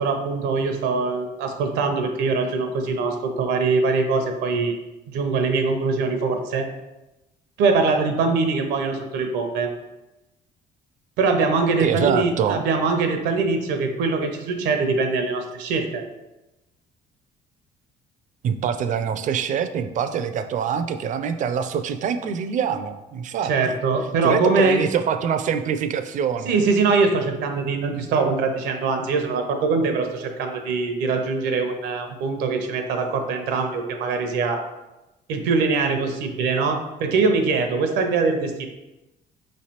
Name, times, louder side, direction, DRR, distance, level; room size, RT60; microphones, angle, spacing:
voice 1, 0.0-4.8 5.1-6.7 7.6-9.7 11.2-16.0 23.4-24.8 26.4-34.6 35.3-38.6, right 4 dB, 90° right, 5 dB, 0.7 m, -22 dB
voice 2, 11.8-12.6 18.4-23.5 24.2-26.6, right 7 dB, 50° right, 9 dB, 0.4 m, -24 dB
5.4 x 3.2 x 2.9 m, 1.0 s
cardioid pair, 110°, 17 cm